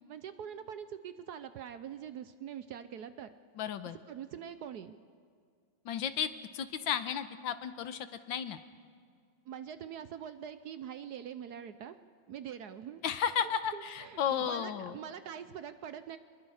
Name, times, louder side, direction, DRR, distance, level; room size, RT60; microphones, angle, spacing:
voice 1, 0.1-3.3 4.1-5.0 9.5-12.0 12.3-13.0 13.4-16.2, right 9 dB, 65° right, 11 dB, 1.1 m, -44 dB
voice 2, 3.6-4.0 5.8-8.6 13.0-15.0, left 8 dB, 75° left, 11 dB, 1.6 m, -34 dB
25.0 x 21.5 x 4.9 m, 2.2 s
omnidirectional pair, 2.1 m